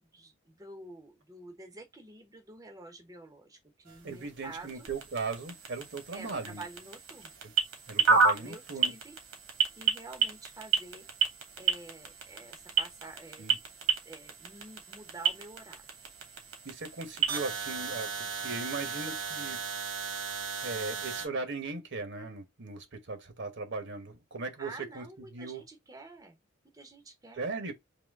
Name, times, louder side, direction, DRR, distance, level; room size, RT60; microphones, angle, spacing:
voice 1, 0.1-4.9 6.1-7.3 8.1-8.6 8.9-9.2 9.8-11.1 11.6-13.4 14.0-15.9 24.6-26.4 26.7-27.5, right 2 dB, 15° right, 0.7 m, -48 dB
sound 1, 3.9-21.3, right 5 dB, 70° right, 1.4 m, -32 dB
voice 2, 4.0-6.6 7.4-7.5 7.9-8.9 13.4-13.6 16.6-19.6 20.6-25.0 25.3-25.6 27.4-27.7, right 3 dB, 50° right, 1.0 m, -38 dB
3.8 x 2.9 x 3.4 m
head